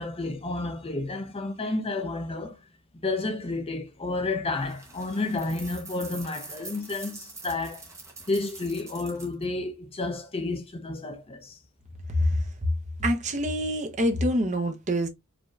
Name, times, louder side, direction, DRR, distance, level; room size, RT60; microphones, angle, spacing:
voice 1, 0.0-2.6 3.0-7.9 8.3-11.6, left 2 dB, 25° left, 0.7 m, -31 dB
sound 1, 4.6-9.4, right 3 dB, 15° right, 1.2 m, -44 dB
voice 2, 13.0-15.1, equal, 35° right, 0.8 m, -25 dB
5.0 x 2.9 x 2.4 m
head